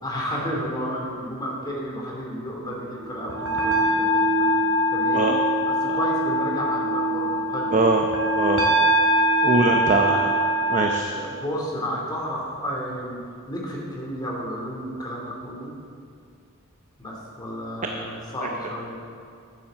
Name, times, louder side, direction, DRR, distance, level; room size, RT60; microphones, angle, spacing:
voice 1, 0.0-4.5 4.9-5.3 5.6-7.7 9.5-9.8 10.1-10.2 11.1-13.2 13.5-15.7 17.0-19.0, equal, 20° left, -3 dB, 2.9 m, -32 dB
sound 1, 3.2-11.0, right 1 dB, 75° right, 2.0 m, -22 dB
voice 2, 7.7-8.0 8.4-8.6 9.4-10.1 10.7-11.1, right 2 dB, 35° right, 2 dB, 0.7 m, -21 dB
10.5 x 9.2 x 6.9 m, 2.3 s
head